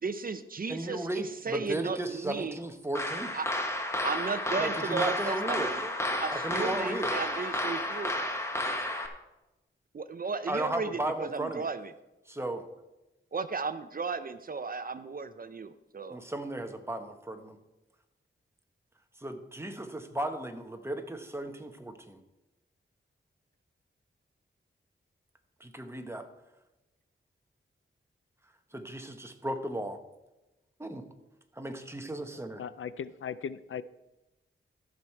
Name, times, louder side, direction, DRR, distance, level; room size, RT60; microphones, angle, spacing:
voice 1, 0.0-2.6 3.3-3.5 4.0-5.8 6.2-8.2 9.9-11.9 13.3-16.2, right 4 dB, 45° right, 12 dB, 0.5 m, -35 dB
voice 2, 0.7-3.3 4.6-5.9 6.3-7.1 10.5-11.7 12.3-12.6 16.1-17.6 19.2-22.2 25.6-26.3 28.7-30.0 30.8-31.1 31.6-32.6, right 1 dB, 10° right, 6 dB, 1.1 m, -35 dB
sound 1, 2.9-9.1, left 1 dB, 15° left, 1.2 m, -32 dB
voice 3, 32.6-33.8, left 7 dB, 75° left, 16 dB, 0.4 m, -37 dB
13.5 x 6.3 x 4.5 m, 0.99 s
wide cardioid pair, 80°, 21 cm